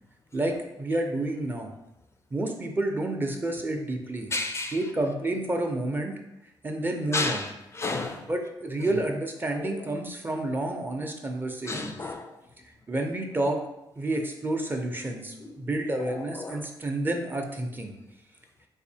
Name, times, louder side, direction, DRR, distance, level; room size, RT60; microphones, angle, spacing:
voice 1, 0.3-1.7 2.3-4.3 4.7-6.1 6.6-7.5 8.3-12.0 12.9-13.6 14.0-17.9, right 1 dB, 25° right, 3 dB, 0.6 m, -29 dB
voice 2, 4.3-4.8 7.1-8.3 9.5-9.9 11.7-12.3 15.4-15.5 16.0-16.7, left 3 dB, 30° left, 4 dB, 0.4 m, -32 dB
4.1 x 2.7 x 2.7 m, 0.88 s
cardioid pair, 85°, 9 cm